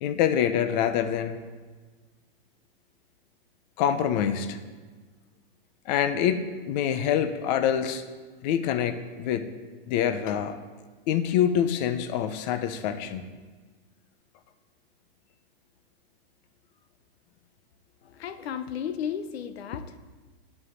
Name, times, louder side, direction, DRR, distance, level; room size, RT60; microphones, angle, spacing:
voice 1, 0.0-1.4 3.8-4.6 5.9-8.0 8.4-9.5 9.9-10.6 11.1-13.3, left 9 dB, 45° left, 10 dB, 0.8 m, -25 dB
voice 2, 18.0-20.0, left 8 dB, 85° left, 11 dB, 0.8 m, -34 dB
9.6 x 5.7 x 7.9 m, 1.4 s
hypercardioid pair, 145°, 30 cm